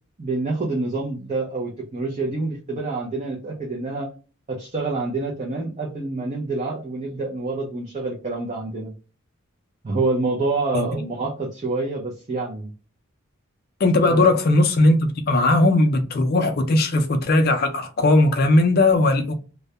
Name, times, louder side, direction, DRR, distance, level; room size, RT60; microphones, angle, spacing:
voice 1, 0.2-4.1 4.5-8.9 9.8-12.7 14.0-14.4, right 3 dB, 30° right, 0.5 m, -27 dB
voice 2, 13.8-19.3, left 2 dB, 45° left, 0.4 m, -18 dB
2.3 x 2.1 x 2.7 m
head